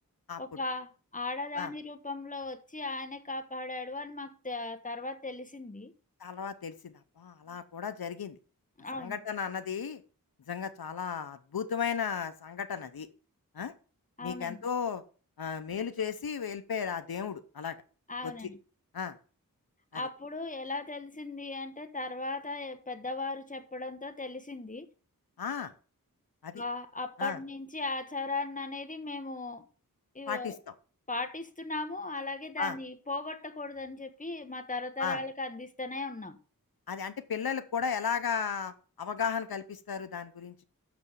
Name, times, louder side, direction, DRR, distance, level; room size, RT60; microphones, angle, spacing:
voice 1, 0.4-5.9 7.5-7.6 8.8-9.2 14.2-14.6 18.1-18.6 19.9-24.9 26.5-29.7 30.1-30.6 31.1-36.4, left 3 dB, 20° left, 1.1 m, -37 dB
voice 2, 6.2-8.4 8.9-10.0 10.5-13.1 13.5-13.7 14.2-15.0 15.4-17.8 18.2-18.3 18.9-19.2 19.9-20.0 25.4-25.7 26.4-26.6 27.2-27.4 30.3-30.5 32.6-32.7 35.0-35.2 36.9-40.6, left 7 dB, 85° left, 0.7 m, -35 dB
6.6 x 6.1 x 7.2 m
wide cardioid pair, 60°, 35 cm